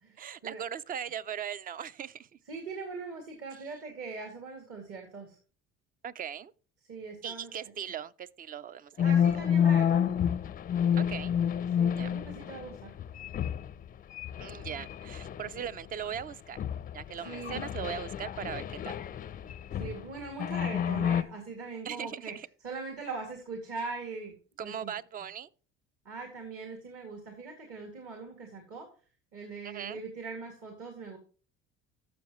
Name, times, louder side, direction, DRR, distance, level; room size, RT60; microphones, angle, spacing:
voice 1, 0.2-2.3 6.0-6.5 7.2-9.1 11.0-11.3 11.9-12.1 14.4-16.6 16.9-18.9 21.8-22.5 24.6-25.5 29.6-30.0, right 8 dB, 30° right, 0.4 m, -39 dB
voice 2, 2.5-5.4 6.9-7.5 9.0-10.1 11.8-12.9 17.2-17.6 19.8-22.4 22.6-24.3 24.6-24.9 26.0-28.9 29.3-31.2, right 4 dB, 50° right, 2.4 m, -41 dB
sound 1, 9.0-13.8 14.2-15.7 16.1-16.2 16.6-20.0 20.4-21.2, left 8 dB, 30° left, 0.5 m, -29 dB
12.0 x 7.1 x 3.0 m
cardioid pair, 125°, 30 cm